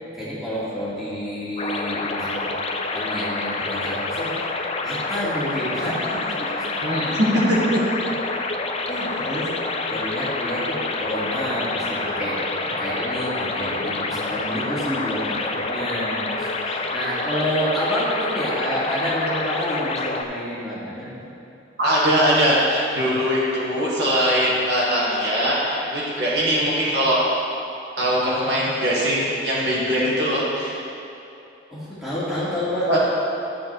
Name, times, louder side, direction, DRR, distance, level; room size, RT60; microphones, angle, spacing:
voice 1, 0.1-2.5 2.9-4.4 4.8-6.7 7.0-7.2 7.5-7.7 8.0-8.1 8.9-9.5 9.8-21.3 31.7-33.0, equal, ahead, -11 dB, 2.4 m, -29 dB
sound 1, 1.6-20.2, left 3 dB, 30° left, 0.5 m, -27 dB
voice 2, 6.8-7.8 21.8-27.2 28.0-30.8 32.9-33.0, equal, 60° right, -7 dB, 2.1 m, -21 dB
13.0 x 7.4 x 3.4 m, 2.8 s
head